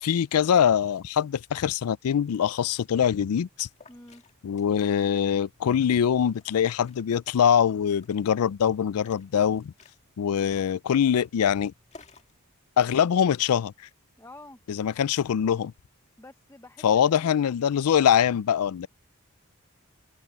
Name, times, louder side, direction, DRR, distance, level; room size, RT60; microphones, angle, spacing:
voice 1, 0.0-3.7 4.4-9.7 10.2-11.7 12.8-13.7 14.7-15.7 16.8-18.9, left 8 dB, 85° left, 0.4 m, -23 dB
Liquid, 2.0-12.4, left 3 dB, 30° left, 1.9 m, -58 dB
voice 2, 3.9-4.2 14.2-14.6 16.2-17.6, left 2 dB, 10° left, 0.8 m, -49 dB
head